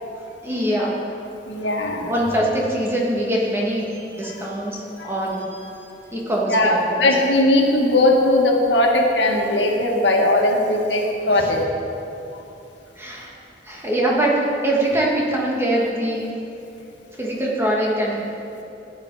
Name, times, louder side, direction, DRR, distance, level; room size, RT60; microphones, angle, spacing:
voice 1, 0.4-1.0 2.1-5.8 6.1-7.1 11.4-11.6 13.0-13.3 13.6-16.3 17.2-18.2, right 1 dB, 15° right, -4 dB, 2.2 m, -23 dB
voice 2, 1.5-2.1 5.0-5.1 6.5-11.6, left 1 dB, 80° left, 0 dB, 1.9 m, -19 dB
15.5 x 10.5 x 4.9 m, 2.8 s
head